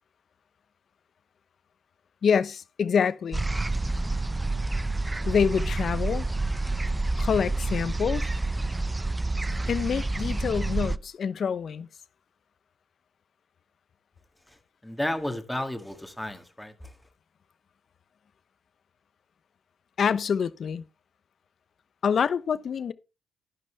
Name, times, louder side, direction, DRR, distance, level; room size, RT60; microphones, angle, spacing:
voice 1, 2.2-3.5 5.2-6.3 7.2-8.3 9.7-11.9 20.0-20.9 22.0-22.9, left 7 dB, 55° left, 0.9 m, -26 dB
sound 1, 3.3-11.0, right 2 dB, 15° right, 0.5 m, -28 dB
voice 2, 14.8-16.9, left 1 dB, 5° left, 2.1 m, -32 dB
11.5 x 10.5 x 3.5 m
cardioid pair, 90°, 0 cm